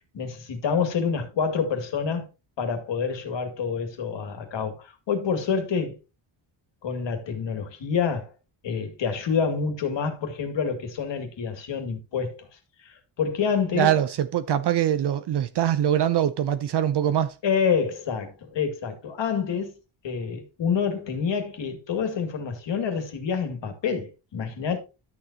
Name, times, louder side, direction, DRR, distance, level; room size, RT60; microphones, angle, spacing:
voice 1, 0.1-2.3 2.6-6.0 6.8-8.3 8.6-12.5 12.8-14.0 17.4-19.7 20.0-24.8, left 6 dB, 65° left, 2.4 m, -27 dB
voice 2, 13.7-17.4, right 10 dB, 55° right, 0.7 m, -23 dB
12.5 x 7.1 x 2.8 m
wide cardioid pair, 145°, 48 cm